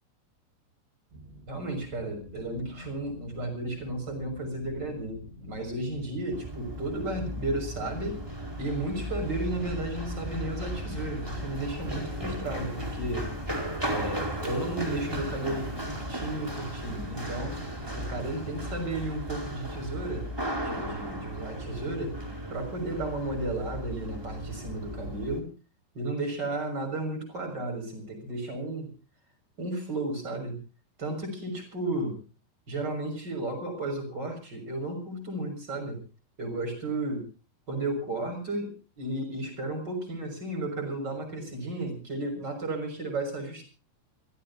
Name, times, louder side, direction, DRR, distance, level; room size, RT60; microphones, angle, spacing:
sound 1, 1.1-18.8, equal, 75° right, 8.9 m, -46 dB
voice 1, 1.5-8.2 8.6-13.3 13.9-17.6 17.9-20.3 20.6-22.2 22.5-25.5 25.9-28.9 29.6-30.6 31.0-32.2 32.7-36.0 36.4-37.3 37.7-43.7, right 2 dB, 20° right, 6 dB, 6.7 m, -33 dB
Run, 6.3-25.4, equal, 5° right, 3.8 m, -36 dB
28.0 x 16.0 x 2.8 m, 0.35 s
omnidirectional pair, 5.1 m